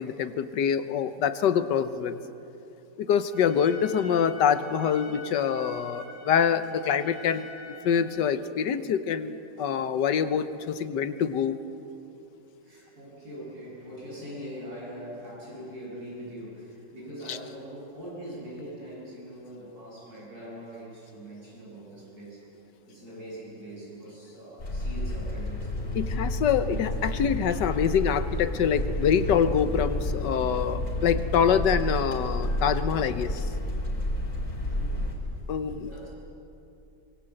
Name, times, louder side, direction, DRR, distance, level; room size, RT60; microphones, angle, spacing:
voice 1, 0.0-2.2 3.0-11.6 17.3-17.4 25.9-33.5 35.5-36.1, left 7 dB, 80° left, 12 dB, 1.5 m, -25 dB
Trumpet, 3.3-8.2, left 2 dB, 85° right, 8.0 m, -46 dB
voice 2, 12.6-22.5 22.9-26.4 31.2-31.6 34.6-35.1 35.8-36.1, equal, 60° right, -5 dB, 8.5 m, -42 dB
sound 1, 24.6-35.1, left 1 dB, 45° left, 3.6 m, -30 dB
24.5 x 22.0 x 7.8 m, 2.8 s
omnidirectional pair, 1.9 m